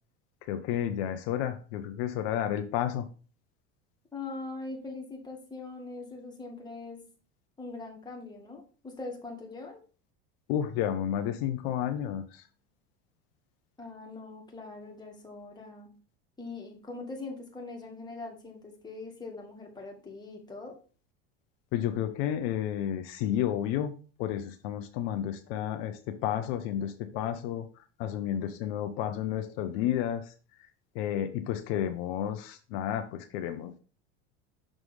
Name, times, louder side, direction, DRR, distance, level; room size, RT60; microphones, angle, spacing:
voice 1, 0.5-3.1 10.5-12.4 21.7-23.9 24.2-27.7 28.0-30.2 30.9-33.7, left 10 dB, 70° left, 8 dB, 0.8 m, -31 dB
voice 2, 4.1-7.0 7.6-9.8 13.8-15.9 16.4-20.7, left 3 dB, 15° left, 1 dB, 1.9 m, -42 dB
6.3 x 3.8 x 4.9 m, 0.38 s
supercardioid pair, 115°, 31 cm